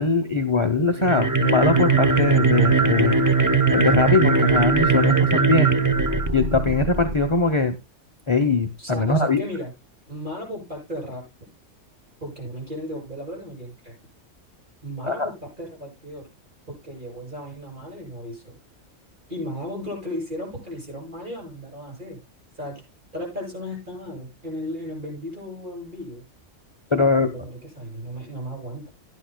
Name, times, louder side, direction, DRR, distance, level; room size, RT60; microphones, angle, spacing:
voice 1, 0.0-3.2 3.7-5.8 6.3-7.8 8.3-9.4 15.1-15.3 26.9-27.3, left 3 dB, 25° left, 6 dB, 0.8 m, -21 dB
sound 1, 1.0-7.2, right 4 dB, 20° right, 0.6 m, -20 dB
voice 2, 8.8-9.7 10.1-11.2 12.2-13.9 14.8-16.3 16.7-18.6 19.3-22.2 22.6-22.8 23.1-26.2 26.9-28.9, equal, 40° right, -3 dB, 7.5 m, -35 dB
16.5 x 10.5 x 2.3 m, 0.23 s
omnidirectional pair, 1.3 m